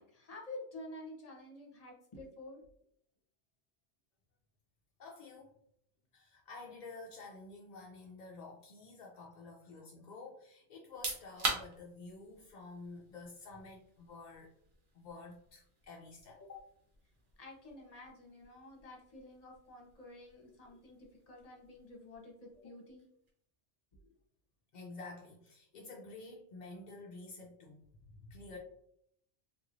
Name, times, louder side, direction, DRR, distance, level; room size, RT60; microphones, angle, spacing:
voice 1, 0.0-2.6 17.4-21.0 21.3-23.0 24.0-24.1, left 2 dB, 35° left, -1 dB, 0.9 m, -50 dB
voice 2, 5.0-5.5 6.1-14.5 14.9-16.6 20.7-20.8 24.7-27.9 28.2-28.6, left 3 dB, 55° left, -1 dB, 0.5 m, -50 dB
sound 1, 10.8-23.4, right 3 dB, 50° right, 0.9 m, -46 dB
3.4 x 3.0 x 2.5 m, 0.69 s
omnidirectional pair, 1.2 m